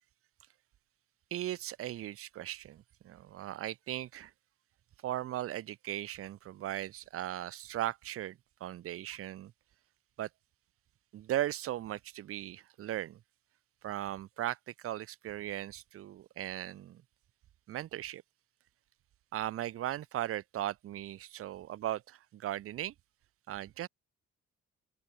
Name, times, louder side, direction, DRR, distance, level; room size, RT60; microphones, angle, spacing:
voice 1, 1.3-4.3 5.0-9.5 10.2-10.3 11.1-13.2 13.8-17.0 17.7-18.2 19.3-22.9 23.5-23.9, right 13 dB, 50° right, 0.5 m, -38 dB
open air
cardioid pair, 90°, 30 cm